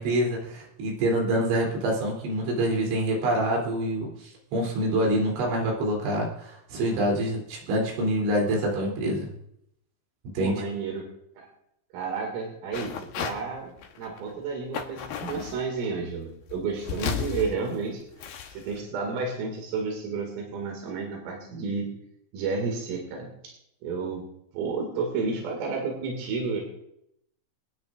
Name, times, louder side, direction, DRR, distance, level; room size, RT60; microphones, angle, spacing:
voice 1, 0.0-9.3 10.4-10.5, right 1 dB, 70° right, -2 dB, 5.7 m, -26 dB
voice 2, 10.4-11.1 11.4-11.5 11.9-18.0 18.5-21.9 22.3-23.5 23.8-24.3 24.5-26.6, right 4 dB, 85° right, 0 dB, 4.9 m, -31 dB
sound 1, 12.7-13.4 13.8-14.3 14.7-15.6 16.4-18.8, left 8 dB, 75° left, 2.1 m, -34 dB
26.0 x 9.8 x 2.6 m, 0.74 s
omnidirectional pair, 5.6 m